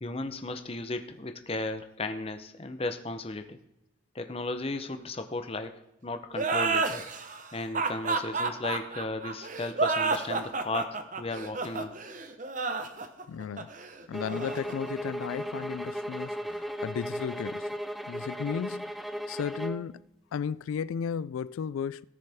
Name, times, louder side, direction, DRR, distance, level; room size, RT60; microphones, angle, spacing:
voice 1, 0.0-3.6 4.1-6.9 7.5-11.9, left 2 dB, 30° left, 0.7 m, -35 dB
sound 1, 6.3-15.6, right 4 dB, 40° right, 0.9 m, -31 dB
voice 2, 13.3-13.7 14.1-17.8 18.1-18.9 19.3-20.0 20.3-22.0, left 7 dB, 85° left, 0.3 m, -34 dB
sound 2, 14.1-19.9, equal, ahead, 0.3 m, -36 dB
17.5 x 6.5 x 3.5 m
head